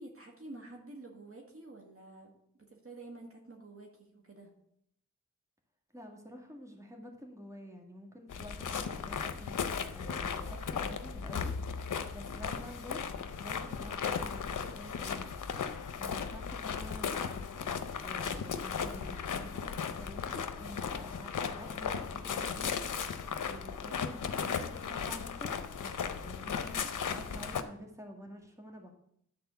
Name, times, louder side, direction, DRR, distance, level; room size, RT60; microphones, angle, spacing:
voice 1, 0.0-2.4 2.7-4.5, right 2 dB, 45° right, 1 dB, 1.7 m, -49 dB
voice 2, 5.9-9.6 9.9-11.5 11.9-15.3 15.9-17.7 18.0-22.8 23.1-28.9, equal, 10° right, 2 dB, 1.9 m, -49 dB
sound 1, 8.3-27.6, left 6 dB, 90° left, 0.7 m, -36 dB
sound 2, 10.0-12.9 13.3-13.4 13.6-13.8 14.1-14.2 15.0-15.1 15.6-15.7, right 2 dB, 25° left, 1.4 m, -56 dB
Bowed string instrument, 18.7-22.7, left 3 dB, 10° left, 2.9 m, -58 dB
10.5 x 4.2 x 6.8 m, 0.72 s
cardioid pair, 55°, 30 cm